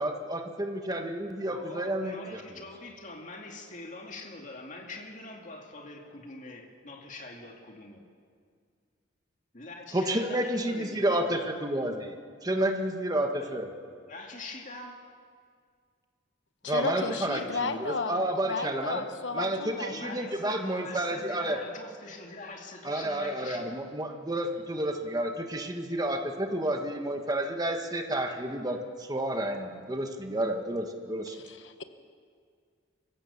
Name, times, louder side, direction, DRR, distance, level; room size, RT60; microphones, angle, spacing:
voice 1, 0.0-2.4 9.9-12.1 12.4-13.7 16.7-19.0 19.3-21.6 22.8-31.3, right 1 dB, 20° right, 5 dB, 1.5 m, -30 dB
voice 2, 1.5-8.0 9.5-11.5 13.4-13.5 14.1-15.0 16.9-17.7 19.9-23.9, left 2 dB, 40° left, 2 dB, 2.4 m, -44 dB
voice 3, 16.6-20.4 31.3-31.8, left 4 dB, 70° left, 9 dB, 1.1 m, -34 dB
24.5 x 15.5 x 7.1 m, 2.1 s
head